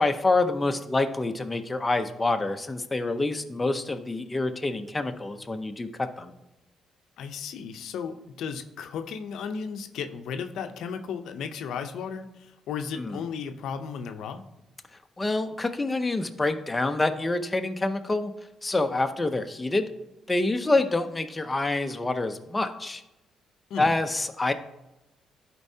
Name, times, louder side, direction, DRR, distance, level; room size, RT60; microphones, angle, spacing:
voice 1, 0.0-6.3 13.0-13.2 15.2-18.3 18.6-19.9 20.3-23.0 23.8-24.5, left 2 dB, 20° left, 7 dB, 0.6 m, -27 dB
voice 2, 7.2-14.4 23.7-23.9, left 6 dB, 80° left, 7 dB, 0.6 m, -35 dB
11.5 x 4.5 x 2.7 m, 0.95 s
cardioid pair, 90°, 0 cm